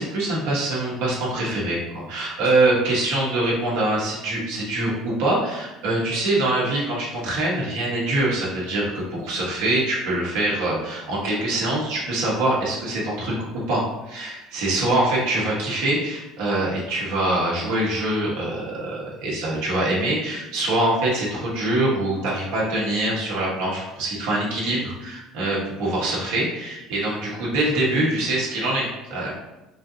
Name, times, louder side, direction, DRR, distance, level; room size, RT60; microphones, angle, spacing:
voice 1, 0.0-13.3 13.7-29.3, right 1 dB, 85° right, -6 dB, 1.1 m, -24 dB
3.8 x 2.7 x 2.7 m, 1.0 s
cardioid pair, 120°, 0 cm